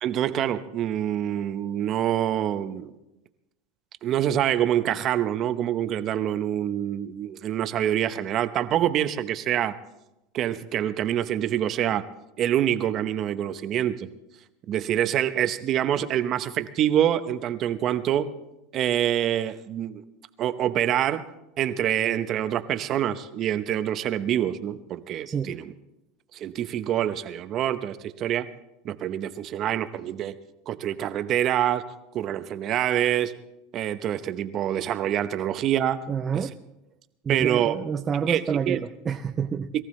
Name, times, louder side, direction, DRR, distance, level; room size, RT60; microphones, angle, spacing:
voice 1, 0.0-2.9 4.0-9.8 10.3-12.1 12.4-14.1 14.7-18.3 18.7-20.0 20.4-21.2 21.6-25.7 26.3-28.5 28.8-30.3 30.7-31.8 32.1-33.3 33.7-36.0 36.3-36.5 37.3-37.8 38.3-38.8, right 11 dB, 40° right, 11 dB, 0.9 m, -26 dB
voice 2, 36.1-36.5 37.2-39.7, right 7 dB, 25° right, 5 dB, 0.6 m, -28 dB
22.5 x 14.5 x 3.2 m, 0.94 s
supercardioid pair, 125°, 0 cm